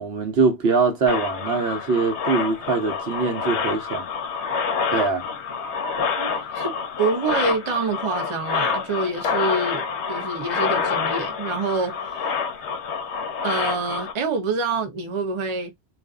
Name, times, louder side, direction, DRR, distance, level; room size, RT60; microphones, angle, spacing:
voice 1, 0.0-4.1 4.9-5.2, right 4 dB, 70° right, 1.0 m, -22 dB
sound 1, 1.1-14.1, left 5 dB, 80° left, 0.9 m, -27 dB
voice 2, 6.2-6.7 7.0-12.3 13.4-15.7, right 4 dB, 40° right, 0.4 m, -26 dB
2.5 x 2.4 x 2.3 m
omnidirectional pair, 1.1 m